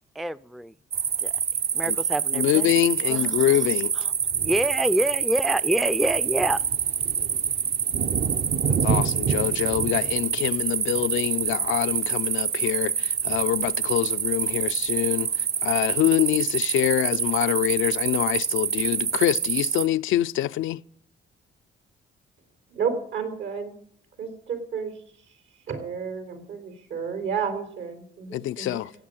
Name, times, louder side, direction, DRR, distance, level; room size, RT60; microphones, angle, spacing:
voice 1, 0.2-0.7 1.2-1.3 1.7-2.7 3.1-3.5 4.0-4.1 4.4-6.6, right 1 dB, ahead, 0.4 m, -26 dB
sound 1, 0.9-19.9, right 7 dB, 50° right, 0.8 m, -26 dB
voice 2, 2.3-3.9 8.7-20.8 28.3-28.9, left 14 dB, 80° left, 0.5 m, -25 dB
voice 3, 22.7-23.7 24.2-25.0 25.7-28.8, right 6 dB, 75° right, 3.9 m, -31 dB
16.0 x 8.2 x 7.8 m
cardioid pair, 90°, 20 cm